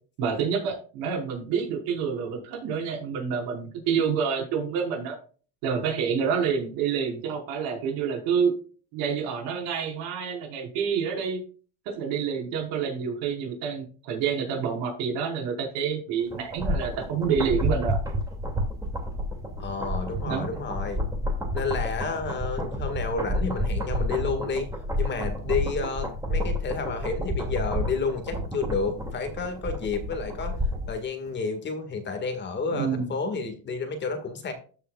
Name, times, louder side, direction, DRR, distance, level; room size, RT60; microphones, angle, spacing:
voice 1, 0.2-5.2 5.6-8.5 8.9-11.4 11.8-18.0 20.2-20.5 25.6-25.7 32.7-33.1, right 6 dB, 75° right, 1 dB, 4.8 m, -28 dB
sound 1, 16.3-31.0 31.3-31.4, equal, 10° right, 2.4 m, -30 dB
voice 2, 19.6-21.0 21.5-24.7 25.0-30.6 30.9-34.5, left 4 dB, 30° left, 6 dB, 1.9 m, -30 dB
13.5 x 7.0 x 2.4 m, 0.39 s
cardioid pair, 155°, 38 cm